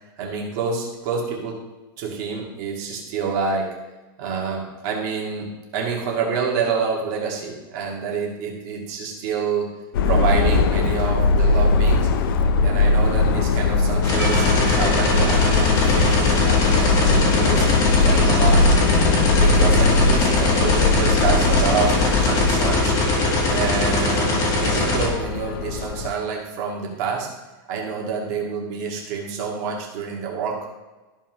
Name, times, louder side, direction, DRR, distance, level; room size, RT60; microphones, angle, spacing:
voice 1, 0.2-1.6 2.0-3.7 4.2-9.7 10.0-12.1 12.6-18.7 19.3-22.9 23.5-27.3 27.7-30.7, right 5 dB, 45° right, -2 dB, 2.1 m, -27 dB
Subway metro underground, 9.9-26.1, left 4 dB, 70° left, 0.7 m, -20 dB
sound 1, 14.0-25.1, left 2 dB, 25° left, 1.7 m, -21 dB
Percussion / Church bell, 14.2-19.2, right 3 dB, 20° right, 1.8 m, -38 dB
14.0 x 5.6 x 3.1 m, 1.2 s
supercardioid pair, 175°, 12 cm